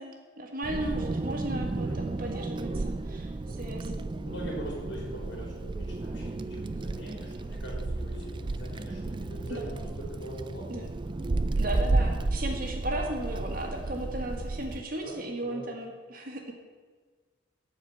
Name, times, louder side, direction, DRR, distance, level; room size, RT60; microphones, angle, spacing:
voice 1, 0.0-3.3 3.6-3.9 9.5-9.7 10.7-10.9 11.6-16.5, right 1 dB, 50° right, 2 dB, 1.7 m, -35 dB
Wind, 0.6-14.8, right 2 dB, 25° right, 0.3 m, -32 dB
voice 2, 3.5-10.8 15.0-15.6, right 1 dB, 65° left, -3 dB, 3.7 m, -42 dB
12.0 x 5.0 x 8.6 m, 1.5 s
head